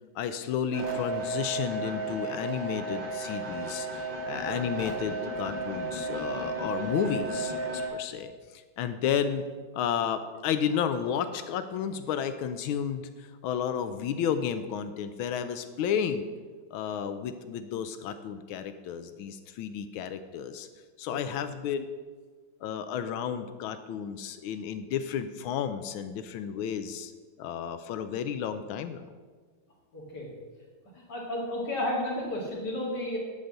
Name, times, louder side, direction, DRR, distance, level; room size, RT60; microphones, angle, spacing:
voice 1, 0.1-9.5 9.7-16.3 16.7-20.7 21.0-21.9 22.6-27.1 27.4-29.1, left 8 dB, 85° left, 10 dB, 1.4 m, -32 dB
sound 1, 0.7-7.9, right 2 dB, 65° right, 2.5 m, -34 dB
voice 2, 21.1-21.4 29.9-30.3 31.1-33.2, left 1 dB, 55° left, -4 dB, 3.0 m, -32 dB
11.5 x 4.0 x 7.7 m, 1.5 s
omnidirectional pair, 2.2 m